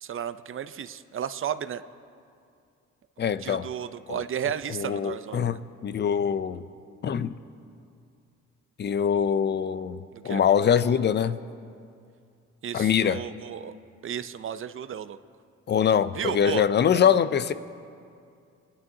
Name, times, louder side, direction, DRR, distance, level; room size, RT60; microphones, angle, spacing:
voice 1, 0.0-1.8 3.2-5.6 10.1-10.4 12.6-13.7 14.0-15.2 16.1-16.6, right 9 dB, 45° right, 0.6 m, -33 dB
voice 2, 3.2-3.7 4.1-4.2 4.7-6.6 7.0-7.4 8.8-11.4 12.7-13.2 15.7-17.5, left 8 dB, 35° left, 0.5 m, -24 dB
26.5 x 11.0 x 2.7 m
cardioid pair, 90°, 30 cm